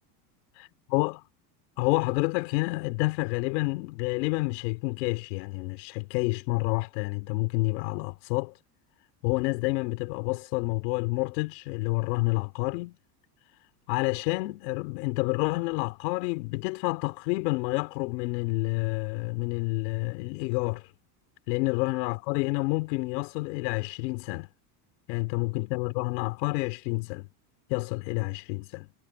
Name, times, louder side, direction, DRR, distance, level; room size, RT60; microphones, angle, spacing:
voice 1, 0.5-1.2 1.8-8.5 9.2-13.0 13.9-20.9 21.5-24.5 25.1-27.3 27.7-28.9, left 25 dB, 80° left, 4.2 m, -29 dB
supercardioid pair, 110°, 49 cm